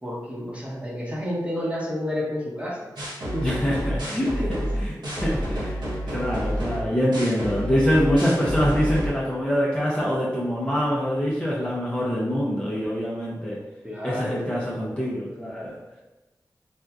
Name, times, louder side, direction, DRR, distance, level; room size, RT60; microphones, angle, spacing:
voice 1, 0.0-2.9 3.3-3.5 4.3-4.5 6.1-6.2 13.8-14.5, left 1 dB, 15° right, -5 dB, 1.1 m, -30 dB
sound 1, 3.0-9.1, equal, 75° right, 1.0 m, -29 dB
voice 2, 3.4-4.4 4.8-5.7 6.1-13.6 14.0-15.7, equal, 15° left, -7 dB, 0.7 m, -25 dB
4.3 x 2.4 x 2.4 m, 1.1 s
cardioid pair, 40°, 7 cm